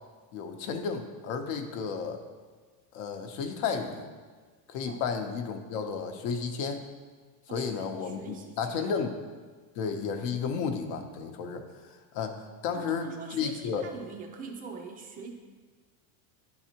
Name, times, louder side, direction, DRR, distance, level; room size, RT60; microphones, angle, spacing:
voice 1, 0.3-2.2 2.9-4.1 4.7-6.8 7.5-9.1 9.8-11.6 12.1-13.9, left 6 dB, 60° left, 6 dB, 0.8 m, -32 dB
voice 2, 7.5-9.0 12.7-15.3, right 4 dB, 20° right, 2 dB, 0.3 m, -43 dB
10.5 x 4.0 x 2.9 m, 1.5 s
supercardioid pair, 145°, 48 cm